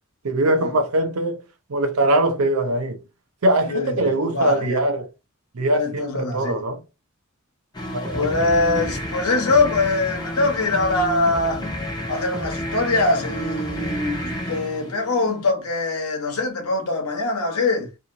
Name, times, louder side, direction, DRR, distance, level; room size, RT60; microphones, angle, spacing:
voice 1, 0.2-1.4 1.7-3.0 3.4-5.1 5.5-6.8 7.9-8.4, right 1 dB, 85° right, 0.7 m, -22 dB
voice 2, 3.7-4.8 5.7-6.6 8.1-11.7 12.1-17.9, left 2 dB, 85° left, 1.0 m, -23 dB
sound 1, 7.7-15.5, equal, 20° left, 0.7 m, -30 dB
2.8 x 2.7 x 2.6 m
head